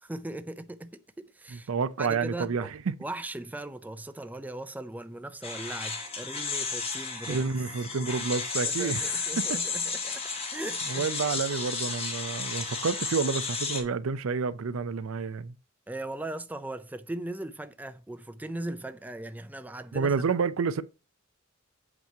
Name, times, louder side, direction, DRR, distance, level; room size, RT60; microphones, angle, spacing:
voice 1, 0.0-1.7 2.0-2.7 3.0-7.5 8.6-10.2 10.5-11.1 15.9-20.4, right 1 dB, 10° right, 0.4 m, -39 dB
voice 2, 1.5-2.9 7.3-9.6 10.9-15.5 19.9-20.8, right 5 dB, 90° right, 0.5 m, -29 dB
sound 1, 5.4-13.8, left 4 dB, 30° left, 1.4 m, -33 dB
8.1 x 3.0 x 4.6 m
head